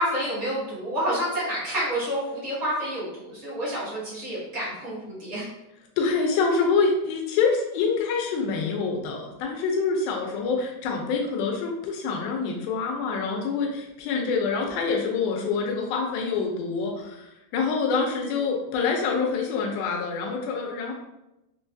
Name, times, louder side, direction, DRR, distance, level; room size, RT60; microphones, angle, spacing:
voice 1, 0.0-5.5, equal, 65° right, -9 dB, 0.8 m, -29 dB
voice 2, 6.0-20.9, left 5 dB, 85° left, 1 dB, 2.5 m, -26 dB
6.1 x 2.3 x 2.6 m, 0.91 s
omnidirectional pair, 4.2 m